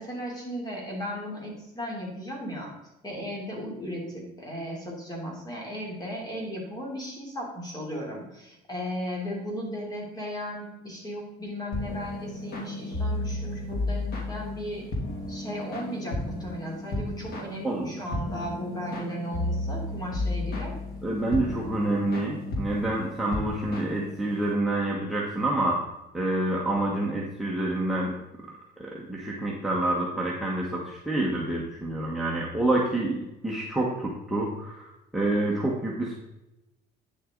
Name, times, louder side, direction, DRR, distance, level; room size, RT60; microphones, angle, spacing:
voice 1, 0.0-2.8 3.0-14.9 15.3-20.8, equal, 20° left, -1 dB, 3.3 m, -36 dB
sound 1, 11.7-24.5, left 1 dB, 60° left, 2.9 m, -33 dB
voice 2, 21.0-25.8 26.1-28.1 28.4-28.5 28.8-36.2, right 1 dB, ahead, -4 dB, 1.4 m, -28 dB
9.6 x 7.7 x 3.9 m, 0.94 s
cardioid pair, 135°, 18 cm